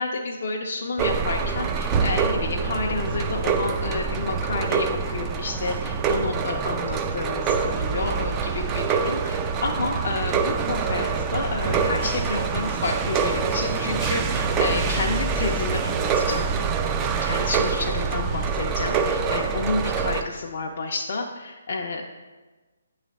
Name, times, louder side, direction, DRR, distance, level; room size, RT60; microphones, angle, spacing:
voice 1, 0.0-16.5 17.2-22.0, left 3 dB, 55° left, 0 dB, 0.5 m, -30 dB
sound 1, 1.0-20.2, right 5 dB, 20° right, 0.3 m, -25 dB
7.9 x 3.2 x 4.0 m, 1.2 s
hypercardioid pair, 150°, 0 cm